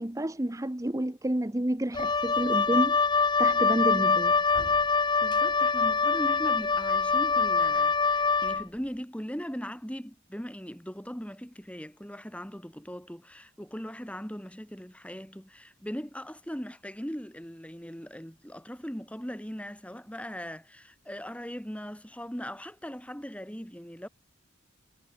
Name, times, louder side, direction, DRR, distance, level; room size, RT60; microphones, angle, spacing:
voice 1, 0.0-3.0 3.4-4.4, right 1 dB, 15° right, 0.9 m, -29 dB
Wind instrument woodwind instrument, 1.9-8.6, left 4 dB, 20° left, 1.2 m, -24 dB
voice 2, 5.2-24.1, equal, 5° left, 3.4 m, -39 dB
head